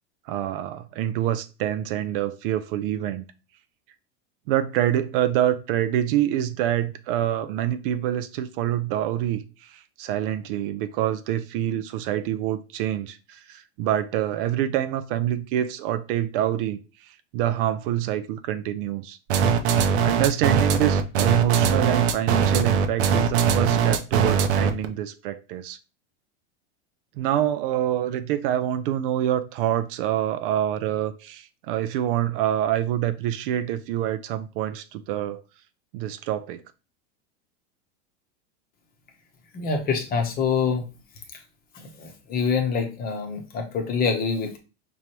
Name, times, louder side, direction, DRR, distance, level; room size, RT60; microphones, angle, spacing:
voice 1, 0.3-3.3 4.5-19.2 20.0-25.8 27.2-35.4 35.9-36.6, right 11 dB, 50° right, 0.5 m, -26 dB
sound 1, 19.3-24.8, right 7 dB, 70° right, 0.8 m, -21 dB
voice 2, 39.5-40.8 41.7-44.6, left 5 dB, 25° left, 0.9 m, -26 dB
5.3 x 3.1 x 2.9 m
supercardioid pair, 145°, 35 cm